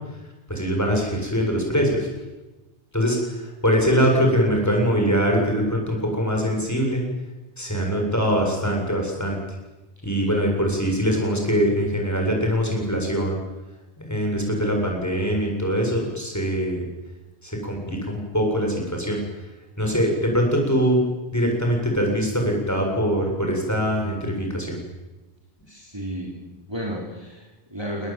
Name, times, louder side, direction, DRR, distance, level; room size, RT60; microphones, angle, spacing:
voice 1, 0.5-2.1 2.9-7.0 7.6-9.4 10.0-13.4 14.1-16.8 17.4-19.2 19.8-21.0 21.3-24.8, equal, 15° left, 0 dB, 7.7 m, -23 dB
voice 2, 25.7-28.1, equal, 20° right, -2 dB, 4.1 m, -33 dB
29.0 x 20.0 x 9.1 m, 1.1 s
omnidirectional pair, 1.2 m